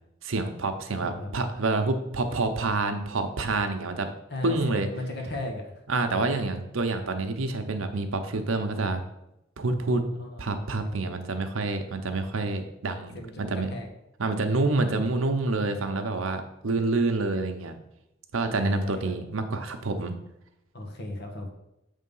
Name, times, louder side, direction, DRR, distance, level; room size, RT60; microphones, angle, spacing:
voice 1, 0.2-4.1 4.4-4.9 5.9-9.0 9.6-10.0 10.4-13.7 14.2-17.7 18.3-20.2, right 3 dB, 80° right, 7 dB, 0.8 m, -27 dB
voice 2, 1.0-1.5 4.3-5.6 10.2-10.4 10.8-11.1 13.1-13.9 18.5-19.1 20.7-21.5, left 1 dB, 55° left, 2 dB, 1.3 m, -36 dB
7.5 x 3.6 x 5.5 m, 0.86 s
head